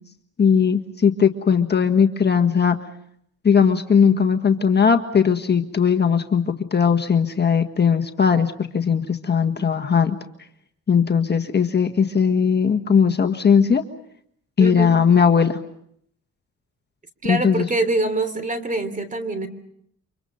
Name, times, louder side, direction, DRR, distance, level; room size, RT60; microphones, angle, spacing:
voice 1, 0.4-2.8 3.4-10.2 10.9-13.8 14.6-15.6 17.2-17.6, left 6 dB, 35° left, 5 dB, 1.6 m, -18 dB
voice 2, 14.6-14.9 17.2-19.5, right 2 dB, 25° right, 12 dB, 3.3 m, -24 dB
29.0 x 25.5 x 5.5 m, 0.70 s
cardioid pair, 90°, 30 cm